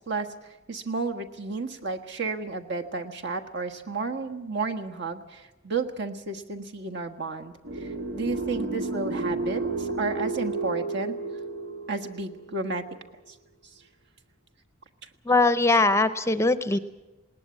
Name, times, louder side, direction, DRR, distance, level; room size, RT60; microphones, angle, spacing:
voice 1, 0.7-11.1 11.9-12.8 15.7-15.8 16.7-16.8, right 4 dB, 60° right, 4 dB, 1.5 m, -32 dB
sound 1, 7.6-12.7, right 3 dB, 85° right, 3.2 m, -32 dB
voice 2, 15.2-16.8, left 2 dB, 15° left, 12 dB, 0.6 m, -21 dB
20.0 x 18.5 x 8.4 m, 1.1 s
head